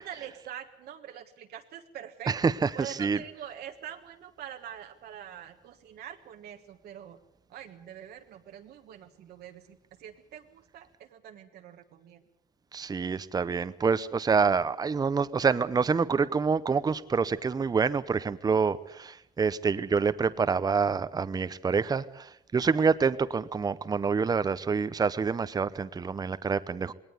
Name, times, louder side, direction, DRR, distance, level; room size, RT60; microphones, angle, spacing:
voice 1, 0.0-7.2 7.5-12.2 22.7-22.9, right 10 dB, 70° right, 4 dB, 1.5 m, -45 dB
voice 2, 2.3-3.2 12.7-26.9, right 5 dB, 20° right, 14 dB, 0.7 m, -27 dB
20.0 x 18.5 x 8.2 m, 0.82 s
cardioid pair, 110°, 17 cm